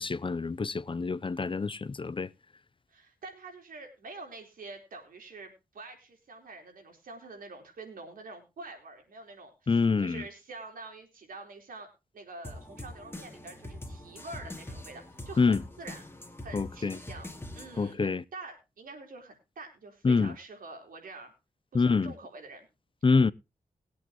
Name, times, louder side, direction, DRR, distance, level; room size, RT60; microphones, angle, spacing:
voice 1, 0.0-2.3 9.7-10.2 15.4-15.6 16.5-17.0 17.8-18.2 20.0-20.3 21.7-22.1 23.0-23.3, left 4 dB, 35° left, 0.6 m, -26 dB
voice 2, 2.9-11.9 12.1-16.0 16.4-17.3 17.5-21.3 21.7-22.7, right 3 dB, 90° right, 4.0 m, -46 dB
sound 1, 12.4-17.9, left 1 dB, 15° left, 2.3 m, -44 dB
21.0 x 8.4 x 3.0 m
cardioid pair, 55°, 14 cm